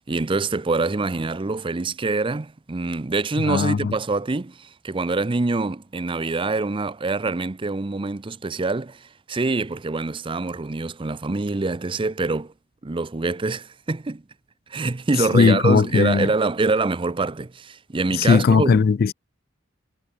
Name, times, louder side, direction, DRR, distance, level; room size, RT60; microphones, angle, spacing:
voice 1, 0.0-12.5 12.8-14.2 14.7-18.8, right 3 dB, 25° right, 0.5 m, -25 dB
voice 2, 3.5-3.9 15.3-16.3 18.2-19.1, left 5 dB, 45° left, 0.3 m, -18 dB
head